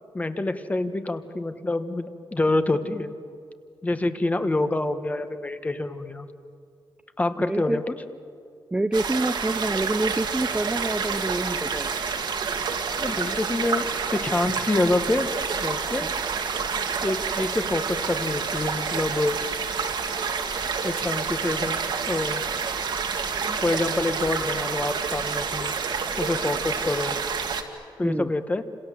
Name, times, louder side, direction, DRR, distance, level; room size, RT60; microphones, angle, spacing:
voice 1, 0.1-3.1 3.8-6.3 7.2-7.9 13.0-13.9 14.1-15.3 15.6-16.1 17.0-19.4 20.8-21.8 22.1-22.4 23.5-25.7 26.2-27.1 28.0-28.6, left 2 dB, 15° left, 9 dB, 1.3 m, -26 dB
voice 2, 7.5-7.8 8.7-11.9 16.0-16.1 28.0-28.3, right 2 dB, 10° right, 8 dB, 0.6 m, -27 dB
sound 1, 8.9-27.6, right 5 dB, 65° right, 2.1 m, -28 dB
29.5 x 26.5 x 7.6 m, 2.3 s
wide cardioid pair, 145°, 8 cm